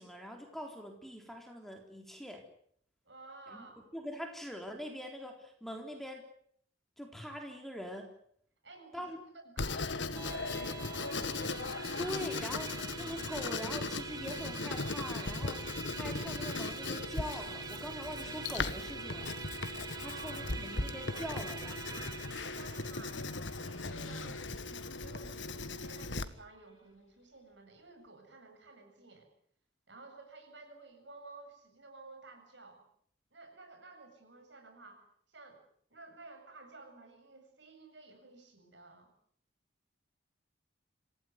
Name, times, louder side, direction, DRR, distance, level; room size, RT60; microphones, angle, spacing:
voice 1, 0.0-2.4 3.5-6.2 7.0-8.1 8.9-9.2 11.7-21.8, equal, ahead, 3 dB, 3.8 m, -43 dB
voice 2, 3.0-3.8 8.6-9.1 9.3-11.4 20.0-20.5 21.0-21.3 21.6-23.2 23.6-29.3 29.9-32.8 33.3-35.6 35.9-39.1, right 3 dB, 65° right, 5 dB, 7.8 m, -53 dB
Writing, 9.6-26.2, left 3 dB, 70° left, 1.7 m, -38 dB
Musical instrument, 10.1-25.7, right 4 dB, 20° right, 1.9 m, -46 dB
sound 1, 21.4-26.1, left 2 dB, 90° left, 2.4 m, -50 dB
27.5 x 16.5 x 9.6 m, 0.64 s
head